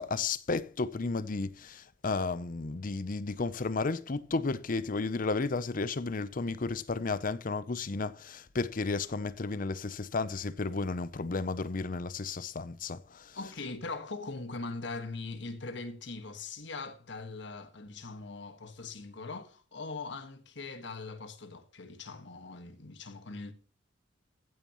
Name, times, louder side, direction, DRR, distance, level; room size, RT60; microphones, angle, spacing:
voice 1, 0.0-13.4, left 3 dB, 45° left, 0.6 m, -33 dB
voice 2, 13.3-23.5, left 3 dB, 65° left, 1.6 m, -41 dB
15.0 x 9.1 x 3.0 m
head